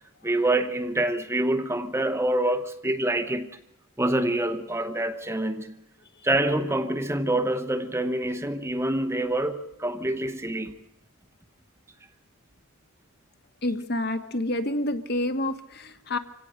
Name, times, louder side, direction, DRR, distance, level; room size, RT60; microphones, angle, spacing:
voice 1, 0.2-3.6 4.0-5.7 6.2-10.7, right 1 dB, 10° right, 1.0 m, -26 dB
voice 2, 13.6-16.2, left 1 dB, 50° left, 1.6 m, -28 dB
26.5 x 17.0 x 6.5 m
head